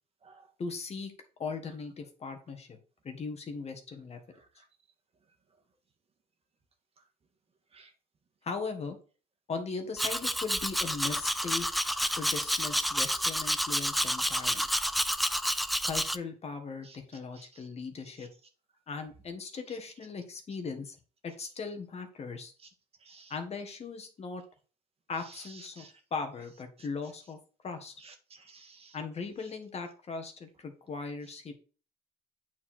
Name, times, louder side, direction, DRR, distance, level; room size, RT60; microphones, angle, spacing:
voice 1, 0.6-1.1 1.4-2.8 3.0-4.2 8.4-9.0 9.5-11.7 12.1-14.7 15.8-18.3 18.9-21.0 21.2-22.5 23.3-24.4 25.1-25.9 26.1-27.4 27.6-27.9 28.9-31.5, left 4 dB, 40° left, 1.8 m, -38 dB
Domestic sounds home sounds, 10.0-16.2, equal, ahead, 0.4 m, -29 dB
voice 2, 28.5-28.9, right 4 dB, 35° right, 1.8 m, -54 dB
8.4 x 4.5 x 4.6 m
cardioid pair, 110°, 17 cm